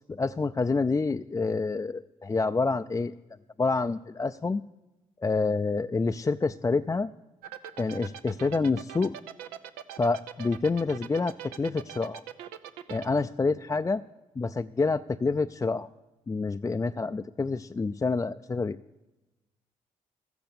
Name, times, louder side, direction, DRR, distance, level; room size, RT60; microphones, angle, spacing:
voice 1, 0.0-3.1 3.6-4.6 5.2-7.1 7.8-9.1 10.0-12.2 12.9-14.0 14.4-15.9 16.3-18.8, left 4 dB, 20° left, 8 dB, 0.4 m, -27 dB
sound 1, 7.4-13.1, right 10 dB, 90° right, 0.5 m, -41 dB
13.0 x 7.9 x 7.0 m, 1.0 s
supercardioid pair, 50°, 16 cm